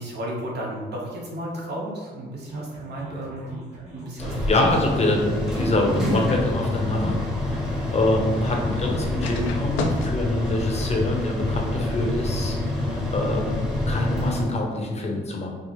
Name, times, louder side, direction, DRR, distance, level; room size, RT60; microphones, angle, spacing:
voice 1, 0.0-4.3 4.6-4.7, right 1 dB, 55° right, -3 dB, 1.1 m, -33 dB
sound 1, 2.5-13.1, right 2 dB, 35° right, 1.3 m, -43 dB
voice 2, 4.2-7.2 7.4-13.5 13.9-15.5, left 1 dB, 35° left, 1 dB, 0.8 m, -25 dB
sound 2, 4.2-14.4, left 1 dB, ahead, 0.9 m, -27 dB
sound 3, 8.8-12.4, left 3 dB, 75° left, 0.5 m, -38 dB
4.6 x 2.0 x 3.0 m, 1.4 s
cardioid pair, 90°, 20 cm